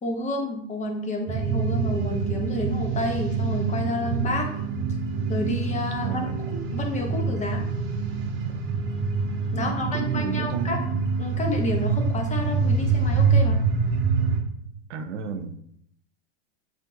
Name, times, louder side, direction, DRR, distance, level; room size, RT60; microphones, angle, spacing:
voice 1, 0.0-4.5 5.3-7.6 9.5-10.8 11.2-13.6, left 1 dB, 20° left, 2 dB, 0.9 m, -30 dB
sound 1, 1.3-14.4, right 4 dB, 35° right, 1.0 m, -26 dB
voice 2, 6.0-6.4 9.6-10.8 14.9-15.6, right 7 dB, 80° right, 7 dB, 0.7 m, -32 dB
7.4 x 2.6 x 2.6 m, 0.69 s
hypercardioid pair, 100°, 35 cm